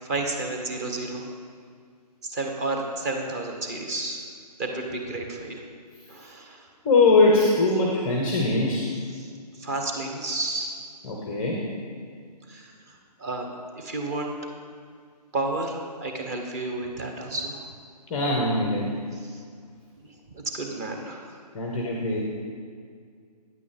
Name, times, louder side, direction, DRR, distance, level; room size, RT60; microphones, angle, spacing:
voice 1, 0.0-1.3 2.2-4.2 4.6-5.6 6.1-6.7 9.1-9.3 9.6-10.7 12.5-12.7 13.2-14.3 15.3-17.6 19.2-19.4 20.0-20.1 20.3-21.4, right 2 dB, 25° right, 2 dB, 0.9 m, -31 dB
voice 2, 6.8-8.9 11.0-11.6 18.1-18.9 21.5-22.2, left 3 dB, 10° left, -1 dB, 0.5 m, -21 dB
9.1 x 8.3 x 3.5 m, 2.1 s
figure-of-eight pair, 140°, 21 cm